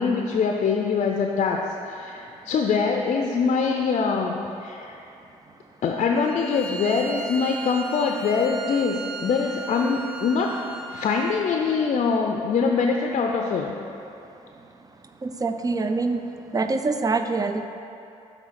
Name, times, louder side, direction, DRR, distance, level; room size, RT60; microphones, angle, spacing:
voice 1, 0.0-5.0 5.8-10.6 10.9-13.7, left 5 dB, 50° left, 2 dB, 0.5 m, -24 dB
Bowed string instrument, 6.1-11.5, right 2 dB, 85° right, 0.9 m, -37 dB
voice 2, 15.2-16.2 16.5-17.7, right 3 dB, 25° right, 7 dB, 0.5 m, -25 dB
7.4 x 3.2 x 5.7 m, 2.7 s
supercardioid pair, 60°, 15 cm